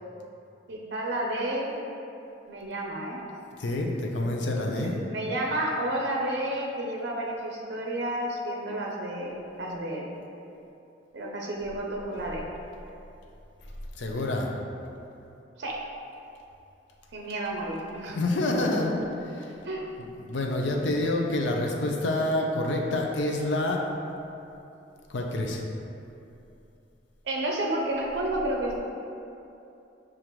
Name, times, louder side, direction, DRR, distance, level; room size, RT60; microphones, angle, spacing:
voice 1, 0.7-1.7 2.5-3.2 5.1-10.1 11.1-12.5 15.6-15.8 17.1-18.2 19.6-19.9 27.2-28.8, right 1 dB, 65° right, -1 dB, 0.5 m, -31 dB
voice 2, 3.6-5.0 14.0-14.5 18.1-18.9 19.3-19.5 20.0-23.8 25.1-25.6, left 1 dB, 75° left, 1 dB, 0.5 m, -27 dB
6.6 x 2.5 x 2.9 m, 2.8 s
head